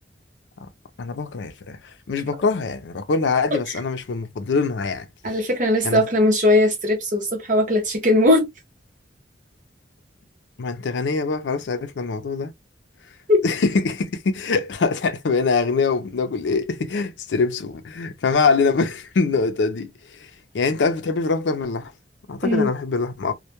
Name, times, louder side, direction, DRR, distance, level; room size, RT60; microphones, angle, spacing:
voice 1, 1.0-1.8 2.1-5.1 5.8-6.0 10.6-12.5 13.4-20.3 20.5-21.9 22.3-23.3, left 4 dB, 90° left, 0.5 m, -23 dB
voice 2, 5.2-8.5 13.3-13.4 22.4-22.7, left 1 dB, 45° right, 0.7 m, -19 dB
2.1 x 2.1 x 2.8 m
head